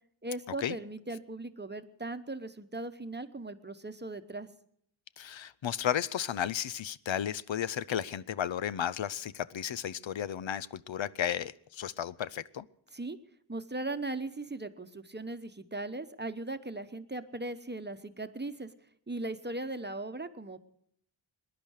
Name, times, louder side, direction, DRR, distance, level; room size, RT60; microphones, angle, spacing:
voice 1, 0.2-4.5 12.9-13.2 13.5-18.7 19.1-20.6, right 2 dB, 25° right, 0.9 m, -38 dB
voice 2, 5.2-12.7, left 9 dB, 85° left, 0.6 m, -33 dB
20.5 x 10.5 x 6.4 m
wide cardioid pair, 85°, 45 cm